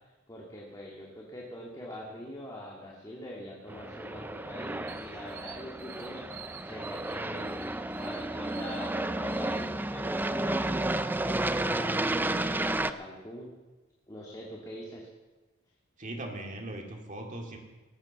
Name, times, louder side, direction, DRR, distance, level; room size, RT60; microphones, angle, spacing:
voice 1, 0.3-13.5 14.1-15.1, left 1 dB, 15° left, -3 dB, 2.1 m, -44 dB
Aircraft, 3.7-12.9, right 2 dB, 10° right, 0.4 m, -32 dB
sound 1, 4.9-10.2, right 7 dB, 70° right, 1.7 m, -50 dB
voice 2, 16.0-17.6, right 1 dB, 40° right, 1 dB, 2.4 m, -39 dB
18.5 x 8.6 x 7.3 m, 1.2 s
head